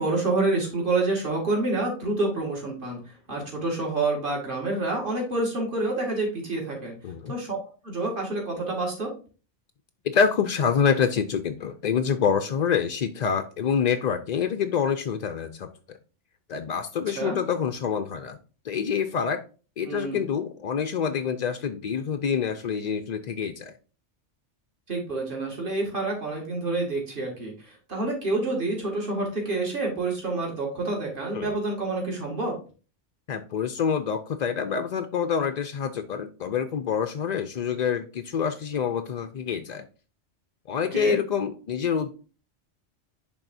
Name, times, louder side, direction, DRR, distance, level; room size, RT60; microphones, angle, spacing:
voice 1, 0.0-6.9 7.3-7.6 7.8-9.1 17.1-17.4 19.8-20.2 24.9-32.5 40.9-41.2, right 2 dB, 45° right, -1 dB, 2.3 m, -28 dB
voice 2, 10.0-15.7 16.5-18.4 18.6-19.4 19.8-23.7 31.3-31.5 33.3-39.9 40.7-42.1, left 7 dB, 60° left, 8 dB, 0.4 m, -26 dB
10.5 x 3.5 x 2.6 m, 0.36 s
omnidirectional pair, 1.2 m